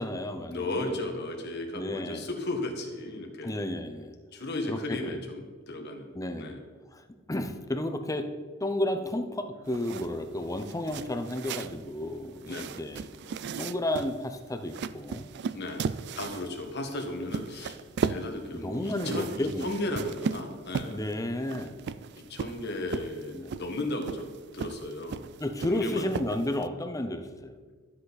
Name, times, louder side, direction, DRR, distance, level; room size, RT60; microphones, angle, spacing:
voice 1, 0.0-0.9 1.7-2.3 3.4-4.2 4.7-5.2 6.1-6.6 6.9-7.0 7.3-8.3 8.6-13.1 13.6-15.3 18.5-19.7 20.9-21.8 23.3-23.5 25.4-27.6, left 1 dB, 15° left, 7 dB, 0.6 m, -32 dB
voice 2, 0.5-3.6 4.3-6.6 12.5-12.7 15.5-15.9 16.2-21.0 22.3-25.2 25.6-26.1, left 2 dB, 55° left, 3 dB, 1.6 m, -35 dB
sound 1, 9.7-26.7, right 6 dB, 55° right, 0.4 m, -37 dB
12.5 x 7.9 x 4.1 m, 1.5 s
head